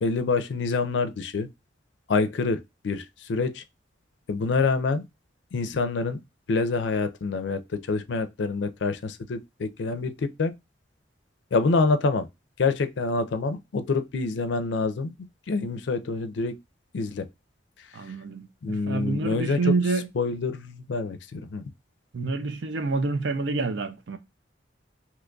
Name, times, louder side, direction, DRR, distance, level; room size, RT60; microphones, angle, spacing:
voice 1, 0.0-1.5 2.1-2.6 2.8-3.6 4.3-5.0 5.5-6.2 6.5-10.5 11.5-12.3 12.6-15.1 15.5-16.5 16.9-17.3 18.6-19.6 20.1-21.6, left 4 dB, 70° left, 0.4 m, -26 dB
voice 2, 17.9-20.1 22.1-24.2, right 3 dB, 70° right, 0.5 m, -27 dB
2.9 x 2.3 x 3.7 m
head